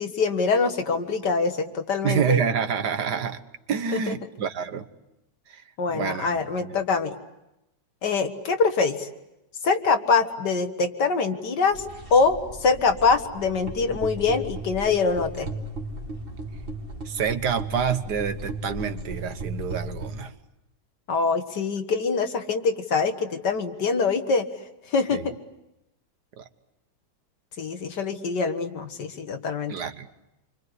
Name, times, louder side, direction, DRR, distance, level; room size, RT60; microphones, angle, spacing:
voice 1, 0.0-2.4 3.9-4.0 5.8-7.2 8.0-9.1 9.6-11.8 12.1-15.5 21.1-24.5 24.9-25.3 27.6-29.7, left 4 dB, 70° left, 7 dB, 2.2 m, -24 dB
voice 2, 2.0-3.4 3.7-4.9 5.5-5.6 5.9-6.7 17.1-20.3 25.1-25.4 26.4-26.5 29.7-30.1, right 7 dB, 65° right, 10 dB, 1.7 m, -27 dB
sound 1, 11.7-20.2, right 2 dB, 30° right, 2.3 m, -36 dB
29.0 x 24.5 x 8.1 m, 0.91 s
omnidirectional pair, 1.9 m